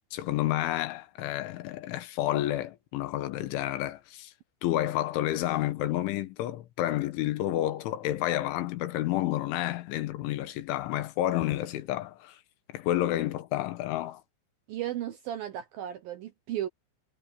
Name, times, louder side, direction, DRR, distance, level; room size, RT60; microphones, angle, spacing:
voice 1, 0.1-4.3 4.6-12.4 12.7-14.2, left 14 dB, 80° left, 3.7 m, -30 dB
voice 2, 14.7-16.7, right 12 dB, 70° right, 2.2 m, -35 dB
omnidirectional pair, 5.5 m